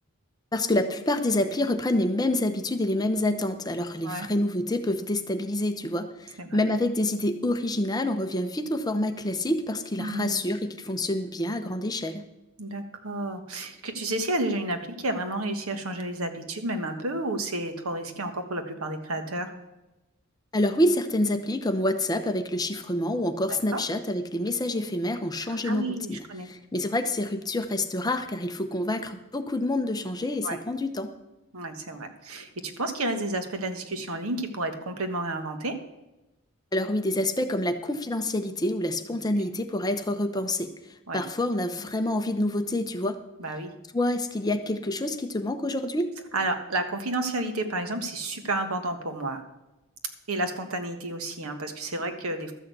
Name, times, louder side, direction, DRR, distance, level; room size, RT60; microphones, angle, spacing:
voice 1, 0.5-12.3 20.5-26.2 26.4-31.1 36.7-40.7 41.1-43.2 43.9-46.1, left 1 dB, 15° left, 7 dB, 0.7 m, -27 dB
voice 2, 10.0-10.3 12.6-19.5 23.7-23.8 25.4-26.5 30.4-30.6 31.5-35.7 41.1-41.2 43.4-43.7 46.3-49.4 50.3-52.5, right 2 dB, 75° right, 7 dB, 1.4 m, -31 dB
12.5 x 6.4 x 8.0 m, 1.0 s
head